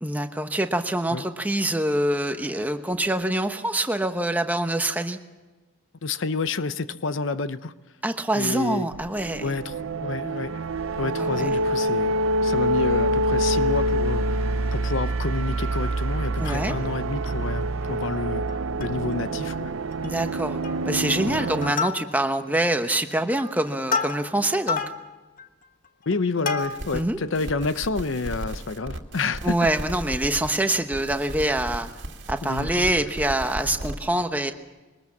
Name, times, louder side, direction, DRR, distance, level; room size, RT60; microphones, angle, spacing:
voice 1, 0.0-5.2 8.0-9.5 11.2-11.5 16.4-16.8 20.0-24.8 26.9-27.2 29.4-31.9 32.3-34.5, right 1 dB, 10° right, 1.0 m, -25 dB
voice 2, 6.0-7.7 8.3-8.9 9.4-10.5 11.0-14.4 14.7-18.5 18.8-19.7 21.3-21.4 26.1-29.6 32.4-32.9, left 3 dB, 75° left, 0.7 m, -29 dB
sound 1, 8.9-21.7, right 1 dB, 85° right, 0.6 m, -26 dB
Plucked string instrument, 16.2-17.0 17.5-17.6 17.8-18.0 18.5-19.1 19.5-19.6 19.9-20.3 20.6-21.0 21.4-22.4 23.0-27.1 27.6-27.7, left 5 dB, 45° left, 1.1 m, -31 dB
sound 2, 26.6-27.0 27.3-30.6 30.9-33.9, right 1 dB, 65° right, 2.1 m, -35 dB
22.5 x 19.5 x 7.2 m
head